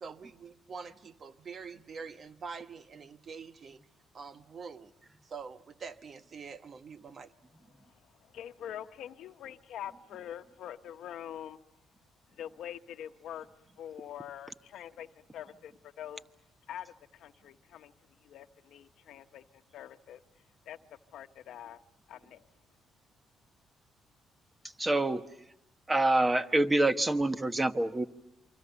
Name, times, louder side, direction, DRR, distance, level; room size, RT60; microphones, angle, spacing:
voice 1, 0.0-3.8 4.1-4.9 5.2-7.3, right 5 dB, 50° right, 1.1 m, -45 dB
voice 2, 7.8-11.6 12.3-13.5 13.8-16.2 16.7-17.9 18.2-20.2 20.7-20.8 21.1-21.8 22.1-22.4, left 10 dB, 80° left, 1.0 m, -45 dB
voice 3, 24.8-25.2 25.9-28.0, right 2 dB, 20° right, 1.2 m, -26 dB
28.0 x 24.5 x 7.0 m
cardioid pair, 90°, 0 cm